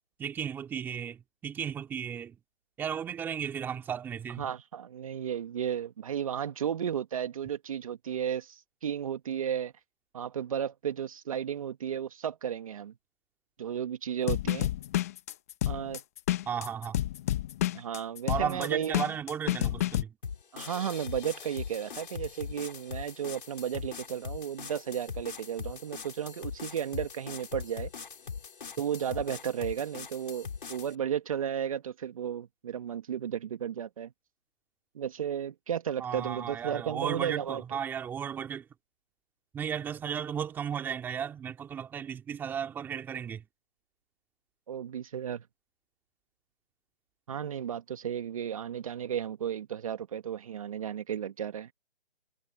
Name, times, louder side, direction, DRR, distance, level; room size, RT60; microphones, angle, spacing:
voice 1, 0.2-2.4 2.8-4.4 16.5-17.0 18.3-20.2 36.0-38.7 39.5-43.4, right 8 dB, 5° right, 2.4 m, -35 dB
voice 2, 4.4-9.7 10.1-12.9 13.6-14.7 15.7-16.0 17.7-19.0 20.5-27.9 28.8-34.1 34.9-37.6 44.7-45.4 47.3-51.7, right 9 dB, 35° right, 1.7 m, -34 dB
sound 1, 14.3-20.0, left 13 dB, 15° left, 0.9 m, -29 dB
sound 2, 20.2-30.9, left 6 dB, 55° left, 5.4 m, -41 dB
figure-of-eight pair, 160°, 32 cm